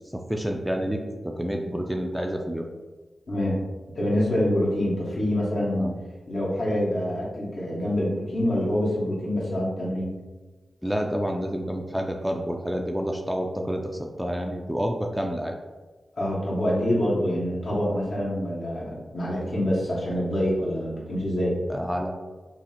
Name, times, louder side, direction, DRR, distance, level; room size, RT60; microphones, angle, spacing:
voice 1, 0.1-2.7 5.7-5.9 10.8-15.5 21.7-22.1, equal, 5° right, 2 dB, 0.4 m, -29 dB
voice 2, 3.3-3.6 3.9-5.9 6.3-10.2 16.2-21.6, equal, 65° left, -7 dB, 1.4 m, -26 dB
5.6 x 2.0 x 2.8 m, 1.3 s
cardioid pair, 65°, 0 cm